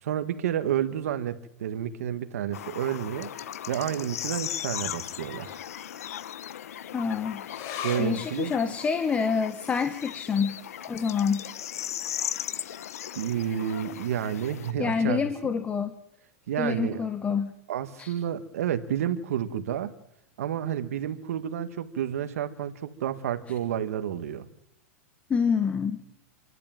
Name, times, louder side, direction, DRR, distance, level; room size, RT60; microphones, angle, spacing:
voice 1, 0.0-3.3 3.7-5.6 7.8-8.5 13.1-15.5 16.5-17.0 17.7-19.9 20.4-24.4, right 10 dB, 75° right, 10 dB, 1.6 m, -30 dB
sound 1, 2.5-14.7, left 10 dB, 85° left, 1.0 m, -37 dB
voice 2, 6.9-7.4 8.0-10.6 10.9-11.5 14.8-15.9 16.6-17.5 18.0-18.1 25.3-26.0, left 6 dB, 15° left, 10 dB, 1.2 m, -27 dB
sound 2, 7.5-14.3 14.6-14.7 15.0-15.7 16.2-16.3, left 9 dB, 45° left, 4.0 m, -44 dB
27.5 x 12.0 x 9.0 m, 0.79 s
supercardioid pair, 140°, 8 cm